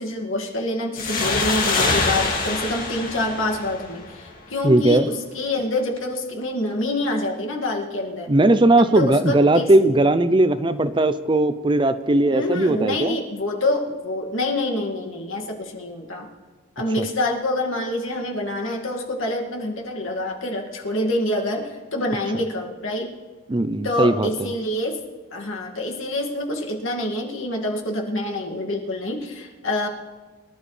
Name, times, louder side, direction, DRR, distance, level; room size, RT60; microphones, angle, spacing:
voice 1, 0.0-8.3 8.8-9.7 12.3-16.3 16.8-23.1 23.8-25.0 25.3-29.9, left 1 dB, 70° left, 0 dB, 2.2 m, -26 dB
sound 1, 1.0-4.4, left 3 dB, 40° left, 2.1 m, -24 dB
voice 2, 4.6-5.1 8.3-13.2 23.5-24.3, right 2 dB, 25° right, 12 dB, 0.5 m, -18 dB
24.0 x 12.0 x 3.3 m, 1.4 s
head